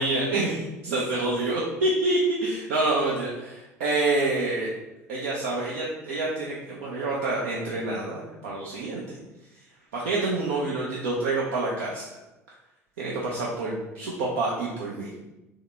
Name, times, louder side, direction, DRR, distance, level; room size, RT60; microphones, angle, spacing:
voice 1, 0.0-4.7 5.1-9.0 9.9-12.0 13.0-15.1, right 2 dB, 70° right, -4 dB, 0.6 m, -27 dB
3.6 x 3.1 x 3.3 m, 1.0 s
figure-of-eight pair, 65°, 8 cm